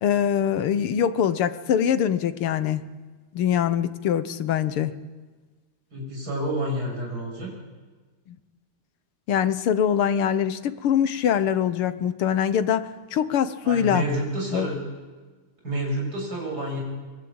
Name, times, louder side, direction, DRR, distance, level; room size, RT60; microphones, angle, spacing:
voice 1, 0.0-2.8 3.3-4.9 8.3-8.4 9.3-14.0 14.5-14.7, left 9 dB, 85° left, 12 dB, 2.0 m, -23 dB
voice 2, 5.9-7.5 13.6-14.8 15.6-16.8, right 1 dB, 45° right, 0 dB, 7.7 m, -29 dB
23.0 x 23.0 x 8.8 m, 1.4 s
omnidirectional pair, 2.4 m